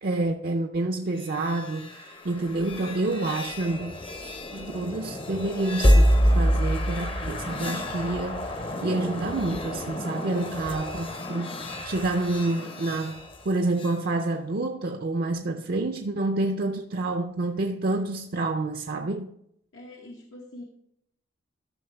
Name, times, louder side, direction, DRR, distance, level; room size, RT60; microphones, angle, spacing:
voice 1, 0.0-4.0 4.5-19.3, right 2 dB, 50° right, 0.5 m, -28 dB
sound 1, 1.2-14.0, equal, 30° left, 0.7 m, -27 dB
voice 2, 10.3-11.0 19.7-20.6, left 1 dB, 80° left, 1.1 m, -45 dB
13.0 x 6.1 x 3.4 m
head